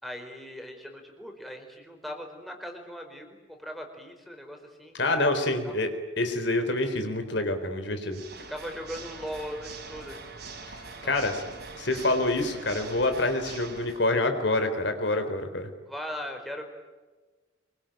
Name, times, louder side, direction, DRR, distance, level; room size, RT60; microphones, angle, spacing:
voice 1, 0.0-5.8 8.5-10.2 11.0-11.2 15.9-16.6, equal, ahead, 2 dB, 4.5 m, -39 dB
voice 2, 4.9-5.9 6.2-8.2 10.7-10.8 11.0-11.4 11.8-15.7, left 2 dB, 60° left, 7 dB, 3.9 m, -27 dB
Water / Mechanisms, 8.1-14.1, right 4 dB, 55° right, 5.6 m, -43 dB
26.0 x 24.0 x 9.1 m, 1.3 s
head